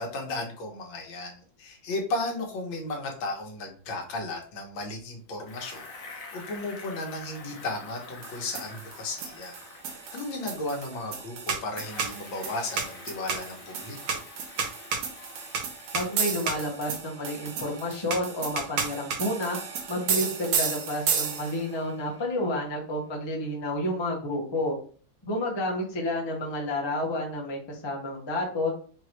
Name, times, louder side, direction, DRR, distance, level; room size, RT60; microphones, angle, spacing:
voice 1, 0.0-5.9 6.3-9.6 10.1-14.2, left 2 dB, 75° left, 1 dB, 1.7 m, -34 dB
Bicycle, 5.4-11.3 11.7-16.9, left 3 dB, 55° left, 1.1 m, -47 dB
sound 1, 8.2-21.7, right 6 dB, 80° right, 1.6 m, -32 dB
voice 2, 15.9-19.6 19.9-24.7 25.2-28.7, left 1 dB, 20° left, -2 dB, 0.7 m, -30 dB
4.7 x 3.0 x 3.0 m, 0.41 s
omnidirectional pair, 2.2 m